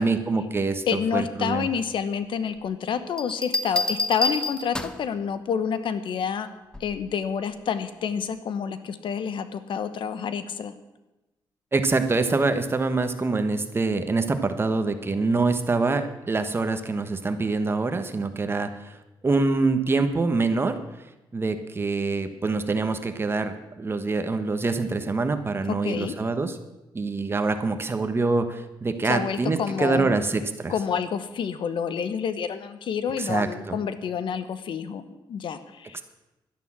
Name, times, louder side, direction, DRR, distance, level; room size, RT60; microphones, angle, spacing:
voice 1, 0.0-1.7 11.7-19.0 19.2-20.8 21.3-26.6 26.9-30.7 33.2-33.8 35.9-36.0, right 3 dB, 25° right, 9 dB, 1.2 m, -25 dB
voice 2, 0.9-6.5 6.8-10.7 25.7-26.1 29.1-30.2 30.7-36.0, left 7 dB, 70° left, 11 dB, 1.1 m, -28 dB
sound 1, 3.2-5.1 6.7-7.1, left 2 dB, 10° left, 0.9 m, -28 dB
12.0 x 10.5 x 7.4 m, 0.99 s
cardioid pair, 115°, 9 cm